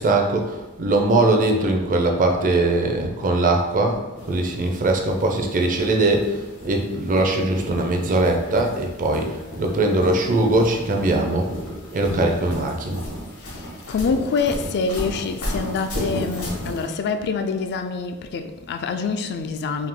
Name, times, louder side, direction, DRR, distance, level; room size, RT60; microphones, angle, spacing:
voice 1, 0.0-4.0 4.2-6.4 6.6-9.3 9.6-11.5 11.9-13.0, right 2 dB, 40° right, 0.5 m, -21 dB
sound 1, 4.2-16.8, equal, 90° left, 1.5 m, -34 dB
voice 2, 13.4-19.9, left 5 dB, 50° left, 0.3 m, -26 dB
3.5 x 2.7 x 3.7 m
head